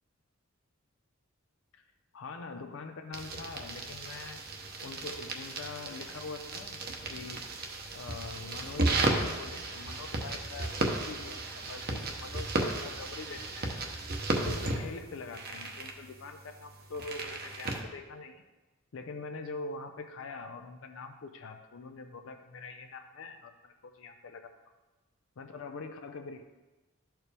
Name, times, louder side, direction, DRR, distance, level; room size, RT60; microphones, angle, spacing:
voice 1, 2.1-4.4 4.8-6.8 7.1-7.4 7.9-13.8 14.4-18.4 18.9-24.5 25.4-26.4, left 3 dB, 70° left, 5 dB, 0.5 m, -44 dB
sound 1, 3.1-17.8, right 2 dB, 50° right, 0.9 m, -35 dB
12.0 x 4.5 x 3.4 m, 1.1 s
head